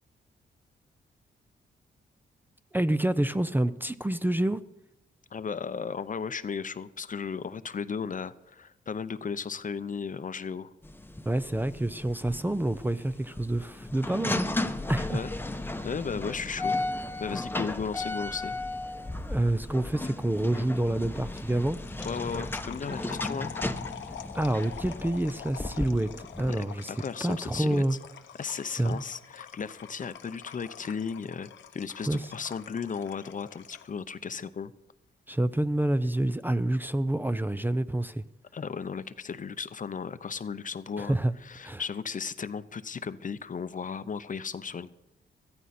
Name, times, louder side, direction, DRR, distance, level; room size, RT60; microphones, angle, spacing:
voice 1, 2.7-4.6 11.3-14.5 14.9-15.2 19.2-21.8 24.3-27.0 27.2-28.0 28.8-29.0 32.1-32.2 35.3-38.2 41.0-41.3 41.6-41.8, right 1 dB, 10° right, 13 dB, 0.6 m, -28 dB
voice 2, 5.3-10.7 15.1-15.3 15.8-18.6 22.0-23.6 26.5-27.8 28.4-34.7 38.5-41.2 41.4-44.9, left 6 dB, 45° left, 14 dB, 0.7 m, -35 dB
sound 1, 10.8-26.5, left 2 dB, 10° left, 1.0 m, -35 dB
sound 2, 21.4-34.0, left 9 dB, 85° left, 1.0 m, -45 dB
14.5 x 14.0 x 4.3 m, 0.87 s
cardioid pair, 65°, 19 cm